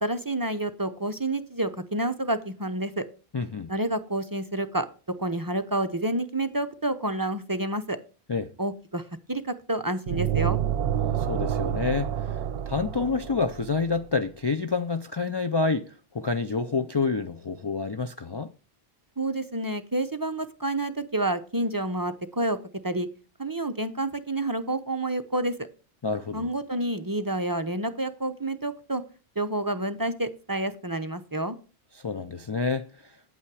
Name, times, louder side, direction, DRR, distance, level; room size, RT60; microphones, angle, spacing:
voice 1, 0.0-3.1 3.7-4.9 5.2-8.0 8.6-10.6 19.2-22.6 22.8-23.1 23.4-25.7 26.3-29.0 29.4-31.6, right 1 dB, 25° right, 0.5 m, -29 dB
voice 2, 3.3-3.7 8.3-8.5 11.0-12.4 12.7-18.5 26.0-26.5 32.0-33.1, left 4 dB, 40° left, 0.4 m, -28 dB
sound 1, 10.1-13.9, right 10 dB, 70° right, 0.8 m, -28 dB
9.2 x 8.7 x 4.7 m
omnidirectional pair, 1.1 m